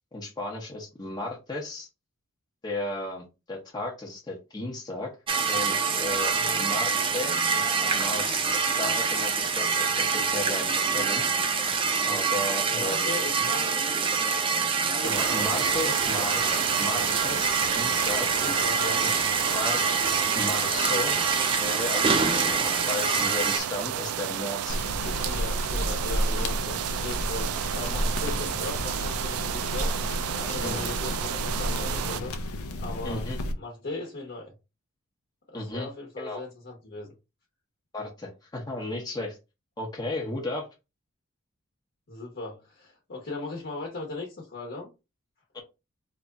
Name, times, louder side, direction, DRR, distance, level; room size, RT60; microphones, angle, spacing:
voice 1, 0.1-1.9 2.6-5.1 5.5-8.4 8.8-11.2 12.1-13.1 15.0-18.3 19.0-19.8 20.3-21.1 21.5-24.8 30.6-30.9 33.0-33.4 35.5-35.9 36.2-36.4 37.9-39.4 39.8-40.7 45.5-45.6, left 2 dB, 20° left, 0.8 m, -34 dB
sound 1, 5.3-23.6, right 5 dB, 25° right, 0.5 m, -26 dB
voice 2, 6.3-6.7 12.7-14.0 18.4-19.2 25.0-29.9 30.3-32.3 32.8-33.2 33.5-34.5 35.5-37.1 42.1-44.9, left 3 dB, 50° left, 1.0 m, -38 dB
sound 2, 15.0-32.2, right 10 dB, 85° right, 0.3 m, -32 dB
sound 3, 24.7-33.5, left 1 dB, 90° left, 0.6 m, -31 dB
3.1 x 2.4 x 3.9 m
head